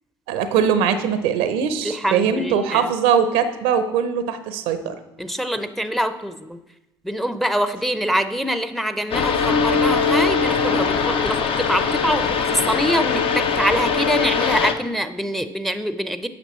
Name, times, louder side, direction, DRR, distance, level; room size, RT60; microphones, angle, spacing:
voice 1, 0.3-5.0, right 7 dB, 85° right, 10 dB, 0.7 m, -21 dB
voice 2, 1.8-2.9 5.2-6.6 7.0-16.3, equal, ahead, 11 dB, 0.6 m, -24 dB
sound 1, 9.1-14.7, left 5 dB, 55° left, 0.7 m, -21 dB
9.1 x 6.5 x 3.1 m, 0.94 s
hypercardioid pair, 65°, 11 cm